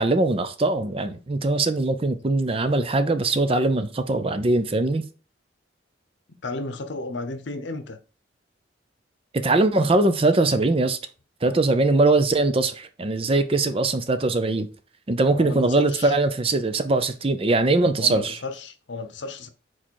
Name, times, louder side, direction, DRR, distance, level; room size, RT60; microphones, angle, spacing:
voice 1, 0.0-5.0 9.3-11.0 11.4-14.7 15.1-18.4, right 2 dB, 30° right, 0.6 m, -21 dB
voice 2, 6.4-8.0 15.4-16.2 18.0-19.5, left 2 dB, 75° left, 0.8 m, -33 dB
4.8 x 4.3 x 4.6 m
head